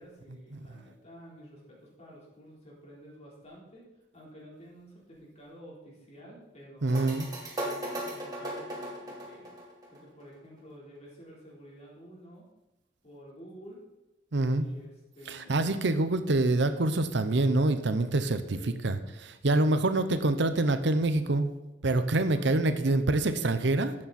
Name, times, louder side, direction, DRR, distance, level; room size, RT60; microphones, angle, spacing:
voice 1, 0.0-3.9 4.1-7.0 7.6-9.5 9.9-12.5 13.0-13.8 14.6-15.5 18.5-18.8 22.2-22.5, equal, 35° left, -3 dB, 3.9 m, -50 dB
voice 2, 6.8-7.3 14.3-14.7 15.3-18.6 18.8-21.5 21.8-23.9, right 2 dB, 70° right, 10 dB, 0.8 m, -26 dB
sound 1, 6.9-10.3, right 1 dB, 20° right, 2.9 m, -37 dB
12.5 x 8.6 x 4.3 m, 0.98 s
head